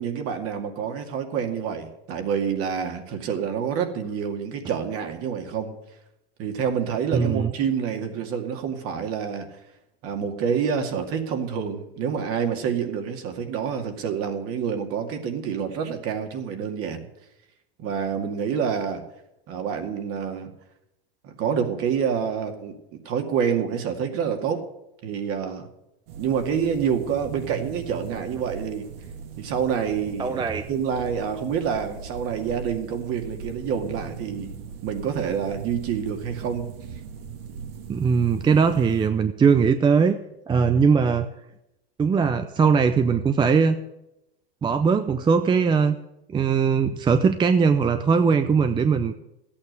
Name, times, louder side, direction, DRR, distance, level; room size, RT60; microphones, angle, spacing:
voice 1, 0.0-5.8 6.4-9.6 10.0-17.1 17.8-19.0 19.5-20.5 21.2-24.6 25.0-25.7 26.1-28.9 29.4-34.5 34.8-36.7, right 7 dB, 45° right, 5 dB, 2.3 m, -27 dB
voice 2, 7.1-7.5 30.2-30.6 37.9-40.2 40.5-41.3 42.0-43.8 44.6-46.0 46.3-49.1, right 5 dB, 15° right, 10 dB, 0.6 m, -20 dB
sound 1, 26.1-39.1, right 6 dB, 65° right, 2.0 m, -39 dB
13.5 x 8.7 x 8.1 m, 0.87 s
hypercardioid pair, 115°, 31 cm